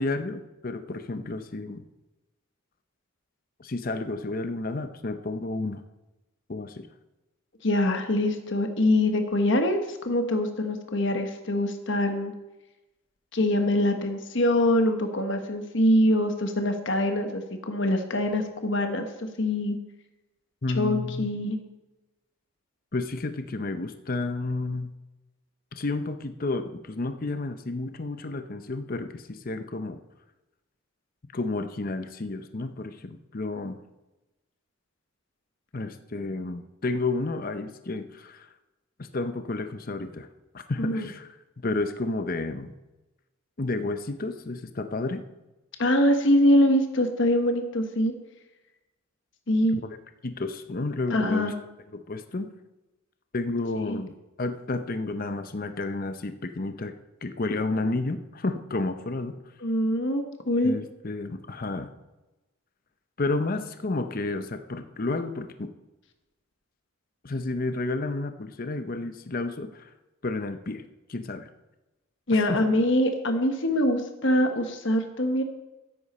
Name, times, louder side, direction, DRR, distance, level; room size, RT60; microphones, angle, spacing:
voice 1, 0.0-1.8 3.6-5.8 6.5-6.9 20.6-21.3 22.9-24.9 25.7-30.0 31.3-33.8 35.7-38.5 39.0-40.3 40.5-41.3 41.6-42.7 43.6-45.2 49.7-49.8 50.2-51.5 51.9-52.5 53.3-54.1 54.4-56.9 57.2-59.4 60.6-61.9 63.2-65.7 67.2-69.9 70.2-70.8 71.1-71.5 72.3-72.6, left 2 dB, 45° left, 9 dB, 0.7 m, -31 dB
voice 2, 7.6-12.3 13.3-19.8 20.7-21.6 40.8-41.1 45.8-48.1 49.5-49.8 51.1-51.5 53.8-54.0 59.6-60.7 72.3-75.4, left 1 dB, 60° left, 6 dB, 1.2 m, -24 dB
13.5 x 10.0 x 4.3 m, 1.0 s
head